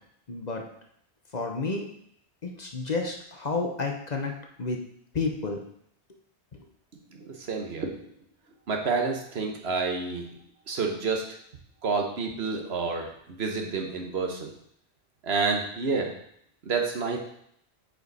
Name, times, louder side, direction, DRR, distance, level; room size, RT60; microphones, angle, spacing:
voice 1, 0.3-0.6 1.3-1.9 2.4-4.8 5.1-5.6, left 3 dB, 40° left, 2 dB, 0.9 m, -30 dB
voice 2, 7.1-7.9 8.7-10.3 10.7-11.2 11.8-13.1 13.4-14.5 15.2-16.1 16.6-17.2, right 4 dB, 70° right, 2 dB, 1.3 m, -29 dB
7.7 x 5.0 x 4.1 m, 0.70 s
omnidirectional pair, 1.1 m